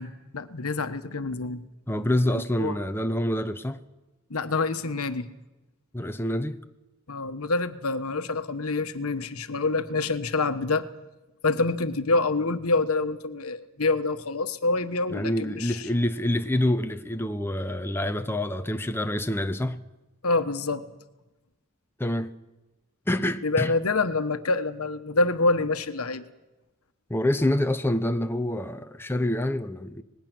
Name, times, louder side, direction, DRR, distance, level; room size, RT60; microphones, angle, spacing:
voice 1, 0.0-1.6 2.3-2.8 4.3-5.3 7.1-10.9 11.4-15.9 20.2-20.9 23.4-26.2, left 3 dB, 80° left, 1.2 m, -26 dB
voice 2, 1.9-3.8 5.9-6.6 15.1-19.8 22.0-22.3 23.1-23.7 27.1-30.0, left 1 dB, 10° left, 0.7 m, -26 dB
25.5 x 20.0 x 6.2 m
head